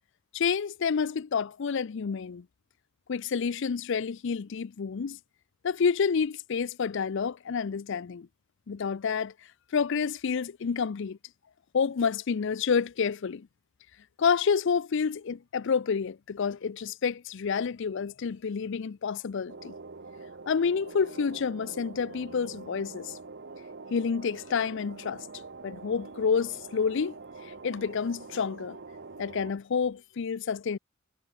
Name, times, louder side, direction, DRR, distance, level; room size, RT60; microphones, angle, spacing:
voice 1, 0.3-2.5 3.1-5.2 5.6-8.3 8.7-9.3 9.7-11.2 11.7-13.5 14.2-19.7 20.5-23.2 23.9-27.2 27.4-28.8 29.2-30.8, left 6 dB, 60° left, 0.5 m, -29 dB
sound 1, 19.5-29.5, right 3 dB, 55° right, 1.1 m, -45 dB
head